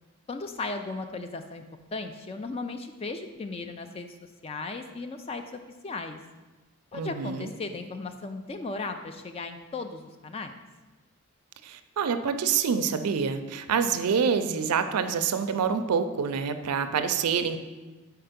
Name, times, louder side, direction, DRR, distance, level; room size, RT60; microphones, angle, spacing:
voice 1, 0.3-1.6 1.9-5.4 5.8-6.2 6.9-10.6, left 3 dB, 25° left, 7 dB, 0.3 m, -36 dB
voice 2, 6.9-7.5 11.6-17.6, right 6 dB, 90° right, 9 dB, 0.4 m, -26 dB
4.7 x 4.4 x 5.1 m, 1.2 s
head